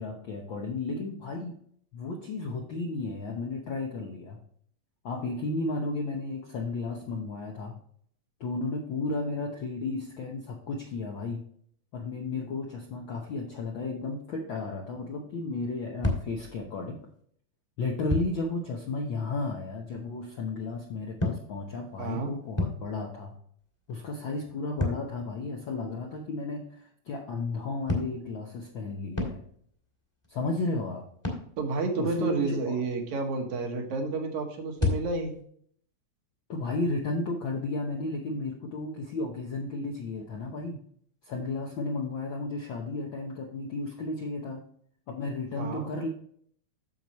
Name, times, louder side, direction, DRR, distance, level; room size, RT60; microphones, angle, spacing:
voice 1, 0.0-1.6 1.9-4.4 5.0-7.8 8.4-11.5 11.9-17.0 17.8-23.3 23.9-29.4 30.3-31.0 32.0-32.8 36.5-40.8 41.2-44.6 45.1-46.1, left 3 dB, 70° left, 1 dB, 1.1 m, -33 dB
sound 1, 16.0-17.0 18.1-18.4 20.6-23.3 23.6-26.3 27.9-29.8 30.2-30.6 31.2-31.6 34.7-35.4, left 2 dB, 10° left, 1.3 m, -33 dB
voice 2, 22.0-22.3 31.6-35.3 45.6-45.9, right 3 dB, 75° right, 3 dB, 2.6 m, -30 dB
9.1 x 7.0 x 3.0 m, 0.62 s
omnidirectional pair, 3.4 m